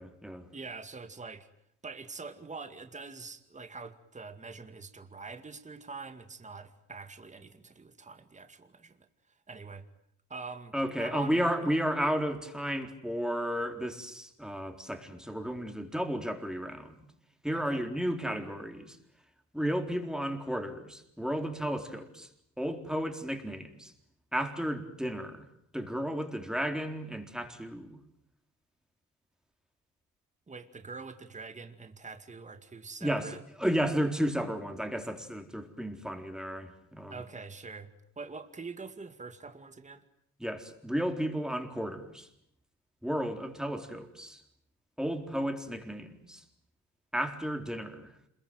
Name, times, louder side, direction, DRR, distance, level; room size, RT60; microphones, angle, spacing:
voice 1, 0.0-0.5 10.7-17.1 17.4-19.0 19.5-22.3 22.6-23.9 24.3-25.5 25.7-28.0 33.0-33.3 33.6-37.2 40.4-42.3 43.0-44.4 45.0-46.4 47.1-48.1, equal, ahead, 5 dB, 4.0 m, -33 dB
voice 2, 0.5-1.5 1.8-9.1 9.5-9.9 10.3-10.7 11.0-11.4 17.5-17.8 30.5-33.4 37.1-37.9 38.2-40.1, right 4 dB, 25° right, 9 dB, 2.2 m, -44 dB
27.5 x 22.5 x 9.3 m, 0.73 s
cardioid pair, 90°, 30 cm